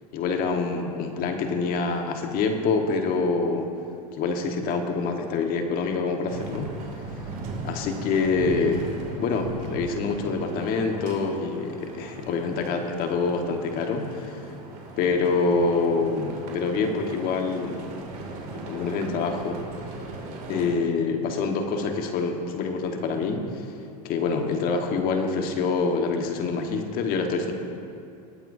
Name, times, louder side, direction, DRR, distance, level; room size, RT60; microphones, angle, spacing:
voice 1, 0.1-3.7 4.2-6.7 7.6-8.9 9.2-14.5 15.0-17.9 18.7-19.6 20.5-23.7 24.0-27.5, left 4 dB, 45° left, 4 dB, 1.4 m, -26 dB
sound 1, 6.3-20.7, right 2 dB, 45° right, 2.5 m, -38 dB
19.5 x 9.0 x 2.7 m, 2.5 s
supercardioid pair, 120°, 20 cm